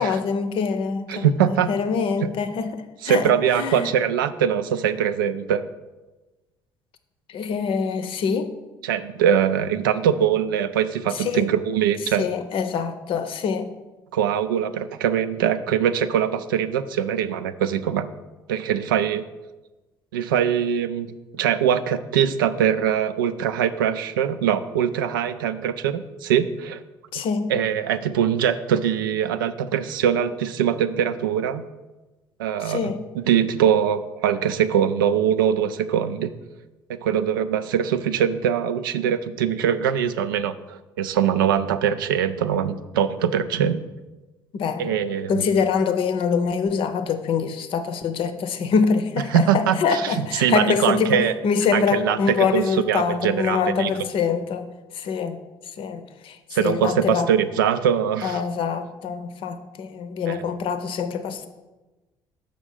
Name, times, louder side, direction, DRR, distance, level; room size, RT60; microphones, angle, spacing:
voice 1, 0.0-3.9 7.3-8.5 11.1-11.5 12.2-13.7 27.1-27.5 32.6-33.0 44.5-54.7 54.9-55.4 55.8-57.3 58.2-61.5, left 6 dB, 50° left, 10 dB, 0.6 m, -25 dB
voice 2, 1.1-1.7 3.0-5.7 8.8-12.2 14.1-18.1 18.5-19.2 20.1-26.8 27.5-31.7 32.4-36.3 36.9-43.8 44.8-45.5 49.3-50.1 50.4-51.3 51.7-53.9 56.5-58.4 60.2-60.4, right 9 dB, 70° right, 12 dB, 0.4 m, -22 dB
6.5 x 5.0 x 5.4 m, 1.1 s
figure-of-eight pair, 50°, 11 cm